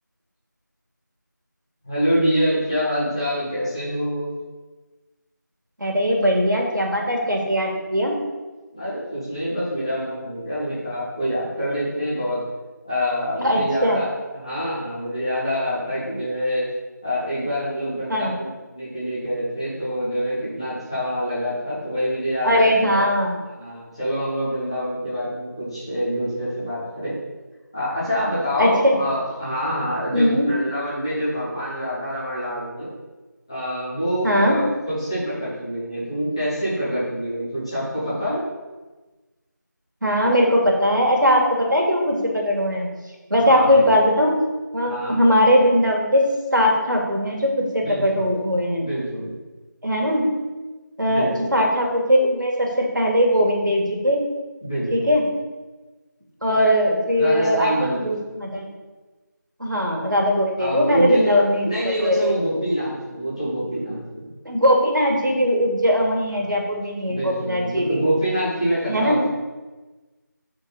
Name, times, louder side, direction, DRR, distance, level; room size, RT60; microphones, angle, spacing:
voice 1, 1.8-4.3 8.7-12.4 12.8-14.1 14.3-16.6 17.0-23.0 23.6-27.2 27.7-32.9 33.5-38.4 43.4-43.9 44.9-45.2 47.8-48.3 48.8-49.4 51.0-51.5 54.6-55.1 57.2-58.1 60.6-64.3 66.3-66.5 67.1-69.2, equal, 15° left, -11 dB, 2.0 m, -26 dB
voice 2, 5.8-8.1 13.4-14.0 18.1-18.3 22.4-23.3 28.6-29.0 30.1-30.5 34.2-34.6 40.0-42.9 43.3-44.3 44.7-46.2 46.5-48.8 49.8-50.2 51.0-54.2 54.9-55.2 56.4-58.7 59.6-61.7 62.0-62.3 64.5-68.0 68.9-69.2, equal, 75° right, -1 dB, 2.4 m, -20 dB
8.6 x 5.2 x 4.1 m, 1.2 s
figure-of-eight pair, 175°, 10 cm